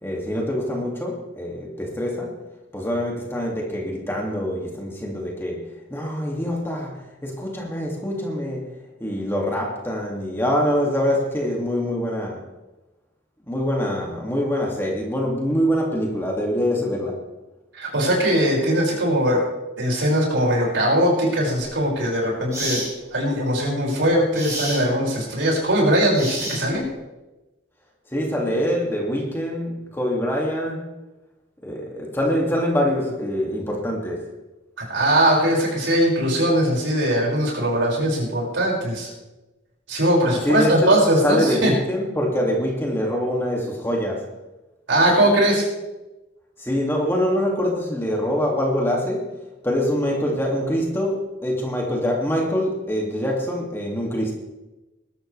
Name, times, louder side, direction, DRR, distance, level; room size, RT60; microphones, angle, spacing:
voice 1, 0.0-2.4 2.7-8.7 9.0-12.4 13.5-17.2 28.1-30.9 31.6-34.3 40.4-41.0 41.2-44.3 46.6-49.3 49.6-54.3, equal, 10° left, -1 dB, 2.3 m, -24 dB
voice 2, 17.7-19.5 19.8-22.8 23.1-26.9 34.8-39.1 39.9-41.7 44.9-45.7, right 1 dB, 65° right, -2 dB, 5.8 m, -20 dB
sound 1, 21.6-21.8 22.5-22.9 24.3-24.8 26.1-26.9, right 1 dB, 15° right, 6.2 m, -29 dB
20.5 x 12.5 x 3.3 m, 1.1 s
head